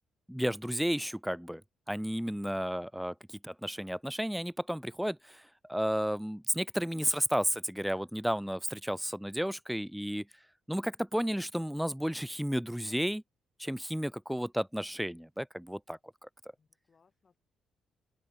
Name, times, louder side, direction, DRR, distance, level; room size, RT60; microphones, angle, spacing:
voice 1, 0.3-1.6 1.9-5.4 5.7-10.2 10.7-13.2 13.6-16.0, equal, ahead, 0.6 m, -32 dB
voice 2, 16.6-17.4, left 5 dB, 40° left, 6.1 m, -71 dB
open air
cardioid pair, 90°, 0 cm